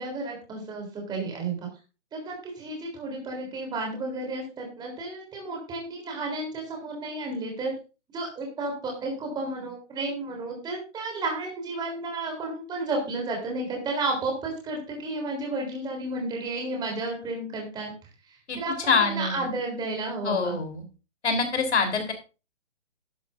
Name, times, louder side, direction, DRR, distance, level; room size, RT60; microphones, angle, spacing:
voice 1, 0.0-1.7 2.1-7.7 8.1-17.9 18.3-20.6, right 2 dB, 10° right, 1 dB, 3.5 m, -32 dB
voice 2, 18.9-19.5 20.2-20.8 21.2-22.1, left 4 dB, 65° left, 6 dB, 3.7 m, -25 dB
11.5 x 11.0 x 2.6 m, 0.31 s
hypercardioid pair, 150°, 38 cm